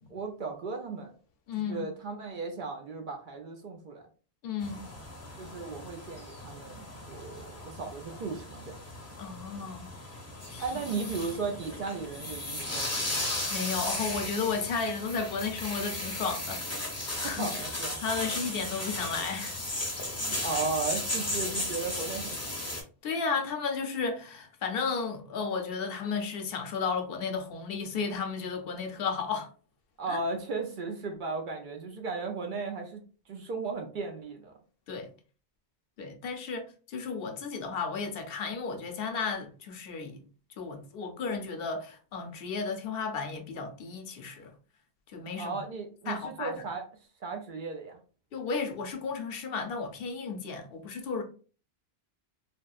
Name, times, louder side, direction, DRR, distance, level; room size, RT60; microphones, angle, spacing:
voice 1, 0.1-1.1 1.7-4.1 5.4-8.8 10.6-13.2 17.2-18.0 20.2-22.4 30.0-33.0 33.3-34.5 45.4-46.8 47.2-48.0, right 4 dB, 60° right, 0.6 m, -36 dB
voice 2, 1.5-1.9 4.4-4.8 9.2-9.9 10.5-10.6 13.5-17.5 18.0-19.6 23.0-29.5 30.1-30.2 34.9-35.1 36.0-40.2 40.6-44.5 45.1-45.6 46.1-46.5 48.3-51.2, left 5 dB, 70° left, 0.7 m, -33 dB
sound 1, 4.6-22.8, left 1 dB, 20° left, 0.6 m, -36 dB
3.4 x 2.1 x 2.3 m
omnidirectional pair, 1.1 m